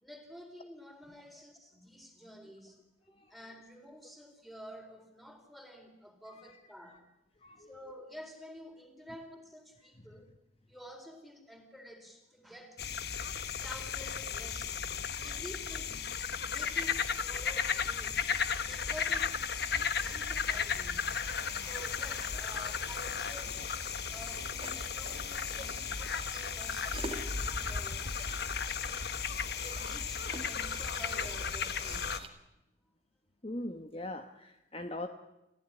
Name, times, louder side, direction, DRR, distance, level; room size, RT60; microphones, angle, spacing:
voice 1, 0.0-2.8 3.3-7.1 7.6-10.3 10.7-12.9 13.6-14.8 15.1-16.1 16.4-18.3 18.6-21.2 21.6-23.6 24.1-28.1 28.8-29.1 29.6-32.3, equal, ahead, 4 dB, 4.0 m, -50 dB
voice 2, 7.4-7.8 21.5-21.7 33.4-35.1, left 1 dB, 30° left, 7 dB, 1.2 m, -41 dB
sound 1, 12.8-32.2, left 6 dB, 60° left, 1.3 m, -35 dB
Musical instrument, 18.3-28.3, right 1 dB, 50° right, 2.1 m, -55 dB
sound 2, 21.0-32.3, right 3 dB, 30° right, 2.2 m, -49 dB
28.5 x 15.5 x 10.0 m, 0.93 s
head